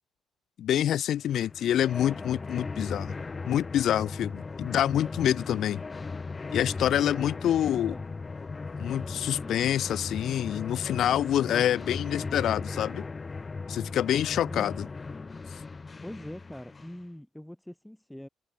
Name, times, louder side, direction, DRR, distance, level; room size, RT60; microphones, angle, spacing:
voice 1, 0.6-3.1 3.5-5.8 6.5-7.9 8.8-13.0 13.7-14.9, left 11 dB, 70° left, 0.4 m, -27 dB
sound 1, 1.3-17.0, left 4 dB, 30° left, 0.8 m, -37 dB
voice 2, 6.9-8.1 11.5-12.1 14.5-14.7 16.0-18.3, left 1 dB, 5° left, 3.7 m, -43 dB
cardioid pair, 90°, 0 cm